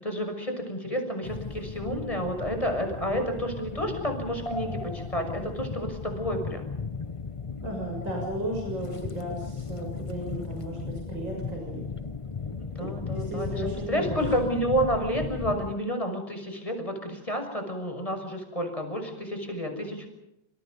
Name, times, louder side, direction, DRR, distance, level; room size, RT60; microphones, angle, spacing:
voice 1, 0.0-6.7 10.1-10.4 12.6-20.1, equal, 15° left, 5 dB, 6.3 m, -30 dB
sound 1, 1.2-15.7, left 4 dB, 45° left, 0.4 m, -36 dB
voice 2, 7.6-11.9 12.8-14.5, right 1 dB, 65° right, 0 dB, 7.5 m, -35 dB
28.0 x 27.5 x 5.4 m, 0.84 s
omnidirectional pair, 2.2 m